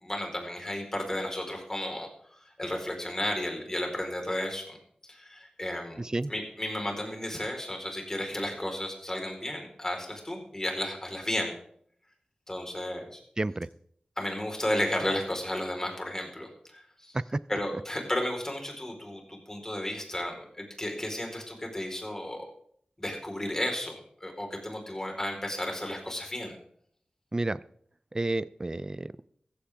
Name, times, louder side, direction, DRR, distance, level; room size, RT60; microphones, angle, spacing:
voice 1, 0.0-4.8 5.1-6.0 6.3-11.5 12.5-13.2 14.2-17.2 17.5-22.5 23.0-26.6, left 1 dB, 20° left, 2 dB, 4.3 m, -33 dB
voice 2, 6.0-6.3 13.4-13.7 27.3-27.6 28.1-29.3, right 2 dB, 30° right, 17 dB, 0.5 m, -31 dB
15.5 x 15.0 x 3.6 m, 0.64 s
wide cardioid pair, 75°, 2 cm